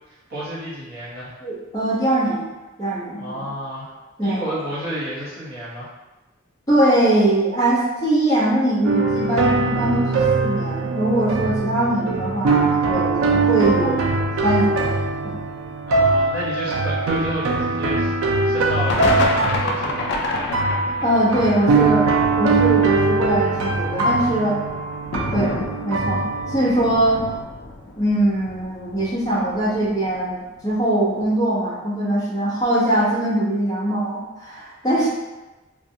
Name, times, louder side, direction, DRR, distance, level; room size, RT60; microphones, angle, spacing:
voice 1, 0.1-1.3 3.2-3.9 4.2-5.9 15.9-18.1 18.4-20.1, right 1 dB, 50° right, -8 dB, 1.1 m, -31 dB
voice 2, 1.4-2.4 2.8-3.4 4.2-4.4 6.7-14.1 14.4-14.9 15.2-15.4 21.0-22.1 22.4-24.6 25.3-25.5 25.8-27.2 28.0-35.1, right 1 dB, 15° left, -9 dB, 0.8 m, -21 dB
sound 1, 8.8-27.4, right 3 dB, 80° right, 0.4 m, -22 dB
sound 2, 18.5-18.6 18.9-30.4 30.6-30.7 31.2-31.3, left 2 dB, 55° left, 0.3 m, -30 dB
2.4 x 2.2 x 2.7 m, 1.1 s
head